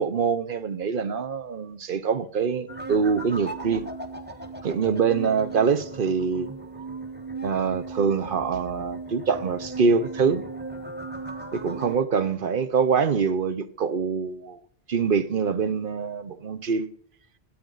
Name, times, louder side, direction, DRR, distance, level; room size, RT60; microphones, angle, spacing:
voice 1, 0.0-3.9 4.6-6.5 7.4-10.4 11.5-14.6 14.9-16.9, right 6 dB, 55° right, 1.0 m, -24 dB
sound 1, 2.7-12.0, right 3 dB, 10° right, 1.3 m, -37 dB
24.5 x 8.9 x 3.9 m
omnidirectional pair, 1.1 m